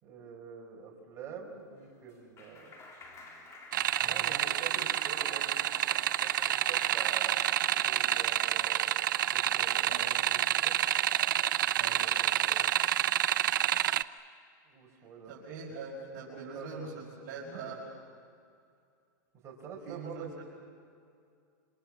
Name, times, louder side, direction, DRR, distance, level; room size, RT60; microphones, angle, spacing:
voice 1, 0.0-2.7 4.0-5.9 6.2-7.5 7.8-8.9 9.3-9.9 10.3-10.7 11.7-12.6 14.7-15.3 16.3-16.7 17.0-17.4 19.4-20.3, right 6 dB, 25° right, -1 dB, 4.9 m, -47 dB
Clapping, 1.5-8.8, left 2 dB, 25° left, 4.0 m, -51 dB
sound 1, 3.7-14.0, right 12 dB, 90° right, 0.7 m, -28 dB
voice 2, 9.9-10.2 11.7-12.1 15.3-17.8 19.9-20.3, right 4 dB, 55° right, -4 dB, 5.4 m, -43 dB
28.0 x 27.0 x 7.5 m, 2.4 s
supercardioid pair, 145°, 10 cm